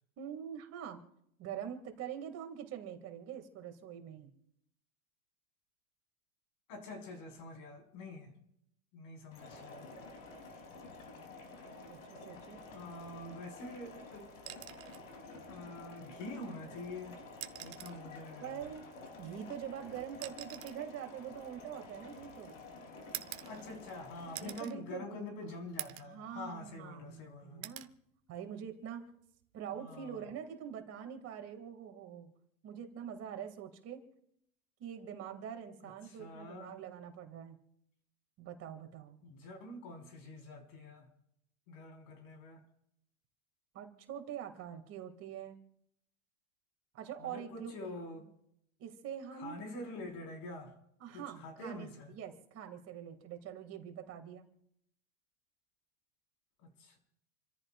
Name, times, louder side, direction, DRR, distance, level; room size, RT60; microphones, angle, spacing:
voice 1, 0.2-1.0 1.4-4.3 11.9-12.6 18.4-18.8 19.2-22.5 24.4-25.2 26.0-27.9 28.3-29.0 29.5-32.3 32.6-34.0 34.8-37.6 38.4-39.2 43.7-45.6 46.9-47.7 48.8-49.6 51.0-54.5, right 9 dB, 35° right, 5 dB, 2.5 m, -44 dB
voice 2, 6.7-8.3 8.9-9.9 12.7-14.3 15.5-17.2 17.6-18.6 23.5-27.7 29.7-30.2 35.8-36.7 39.2-41.1 41.7-42.6 47.2-48.2 49.3-50.7 51.1-52.1 56.6-57.0, left 2 dB, 50° left, 3 dB, 4.6 m, -46 dB
sound 1, 9.3-24.6, left 3 dB, 80° left, 3.6 m, -51 dB
sound 2, 14.4-15.1 16.5-16.6 17.3-18.1 19.2-22.3 23.1-24.0 24.3-24.8 25.2-25.3 25.8-26.2 26.6-27.2 27.6-27.9 29.4-29.6, right 13 dB, 80° right, 1.1 m, -46 dB
29.0 x 14.0 x 2.5 m, 0.76 s
hypercardioid pair, 115°, 40 cm